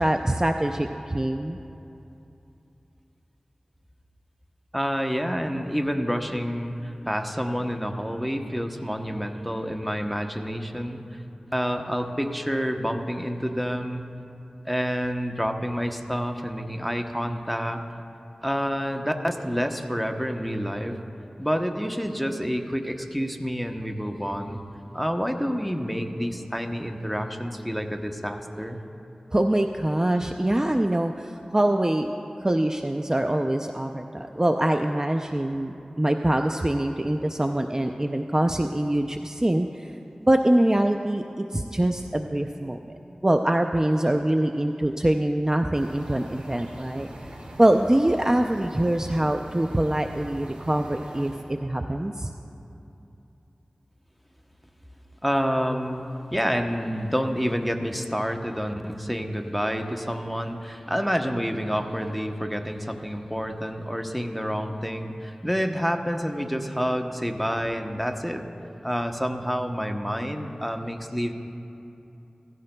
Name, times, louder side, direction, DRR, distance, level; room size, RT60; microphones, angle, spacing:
voice 1, 0.0-1.6 29.3-32.1 32.4-39.9 40.2-42.8 43.2-47.1 47.6-52.3, right 1 dB, 25° right, 4 dB, 0.4 m, -24 dB
voice 2, 4.7-11.2 11.5-14.0 14.6-17.8 18.4-21.0 21.4-24.6 24.9-28.8 55.2-56.0 56.3-68.4 68.8-71.3, equal, ahead, 4 dB, 0.8 m, -28 dB
sound 1, 45.7-51.4, right 1 dB, 75° right, 2.4 m, -42 dB
16.5 x 14.5 x 2.2 m, 2.8 s
cardioid pair, 40°, 2 cm